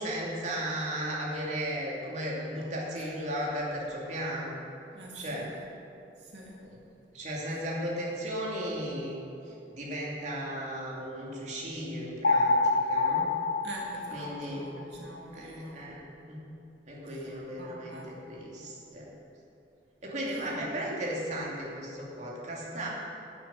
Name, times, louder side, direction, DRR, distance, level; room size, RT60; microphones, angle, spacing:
voice 1, 0.0-4.6 5.1-5.5 6.6-6.8 7.1-9.2 9.5-13.3 14.1-14.7 15.3-16.0 16.3-16.4 16.9-19.1 20.0-22.9, right 1 dB, 45° right, -4 dB, 2.6 m, -35 dB
voice 2, 4.9-5.5 6.3-6.6 13.6-15.7 17.5-18.1, right 1 dB, 85° right, -3 dB, 2.1 m, -44 dB
sound 1, 12.2-14.7, left 3 dB, 60° left, 0.8 m, -26 dB
11.5 x 7.6 x 9.1 m, 2.7 s
head